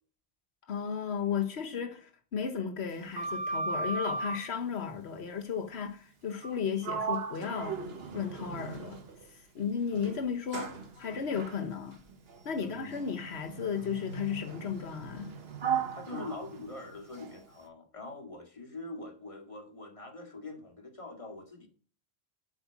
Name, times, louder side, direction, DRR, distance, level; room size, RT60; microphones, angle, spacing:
voice 1, 0.7-7.8 8.1-9.0 9.3-10.7 11.0-12.0 12.4-15.4, left 7 dB, 85° left, 1.3 m, -34 dB
Sliding door, 2.9-4.5 6.4-6.6 6.8-9.3 9.9-17.4, right 5 dB, 70° right, 1.3 m, -37 dB
voice 2, 12.5-13.0 15.9-21.7, left 2 dB, 30° left, 2.1 m, -44 dB
8.1 x 5.1 x 5.9 m
omnidirectional pair, 1.1 m